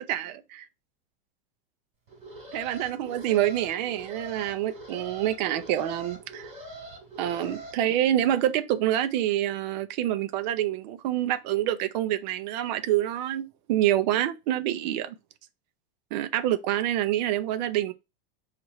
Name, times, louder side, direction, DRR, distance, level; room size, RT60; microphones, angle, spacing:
voice 1, 0.1-0.6 2.5-6.5 7.2-15.1 16.1-17.9, right 12 dB, 50° right, 0.5 m, -27 dB
Alarm, 2.1-7.7, right 1 dB, 20° right, 3.1 m, -43 dB
4.6 x 2.5 x 4.1 m
supercardioid pair, 175°, 29 cm